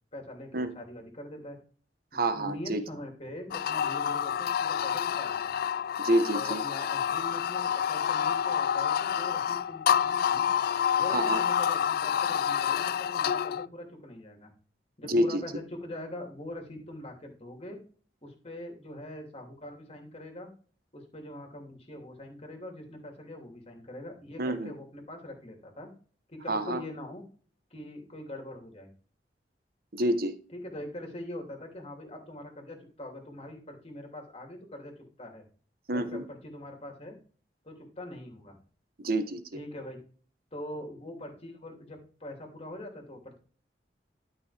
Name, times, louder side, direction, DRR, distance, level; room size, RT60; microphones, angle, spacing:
voice 1, 0.1-1.6 2.1-5.5 6.3-10.5 10.9-14.5 15.0-17.8 18.2-20.5 20.9-25.9 26.3-27.2 27.7-28.9 30.5-34.9 35.2-35.4 35.9-37.2 37.6-38.6 39.5-40.0 40.5-43.4, left 1 dB, 35° left, 2 dB, 3.0 m, -43 dB
voice 2, 2.1-2.8 6.0-6.6 11.1-11.4 15.0-15.4 24.4-24.7 26.5-26.8 29.9-30.4 35.9-36.2 39.0-39.4, right 1 dB, 55° right, 10 dB, 1.2 m, -28 dB
sound 1, 3.5-13.7, left 8 dB, 60° left, 0.3 m, -28 dB
12.5 x 6.0 x 3.4 m, 0.43 s
head